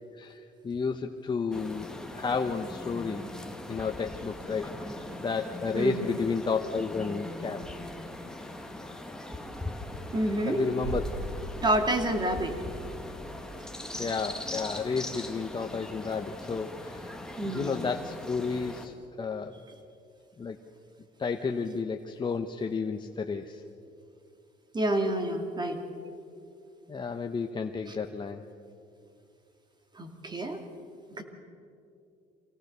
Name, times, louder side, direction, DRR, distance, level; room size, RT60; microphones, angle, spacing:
voice 1, 0.1-3.3 3.7-7.6 10.4-11.0 14.0-19.5 20.4-20.6 21.2-23.6 26.9-28.4, left 5 dB, 25° left, 4 dB, 0.9 m, -32 dB
sound 1, 1.5-18.9, left 1 dB, 5° left, 1.8 m, -41 dB
voice 2, 5.7-6.1 10.1-10.6 11.6-12.6 17.4-17.9 24.7-25.8 27.9-28.0 29.9-30.6 31.2-31.3, right 1 dB, 25° right, 6 dB, 2.5 m, -28 dB
sound 2, 10.8-16.5 16.8-16.9, right 2 dB, 45° right, 2.7 m, -42 dB
25.0 x 17.5 x 6.7 m, 2.5 s
cardioid pair, 110°, 17 cm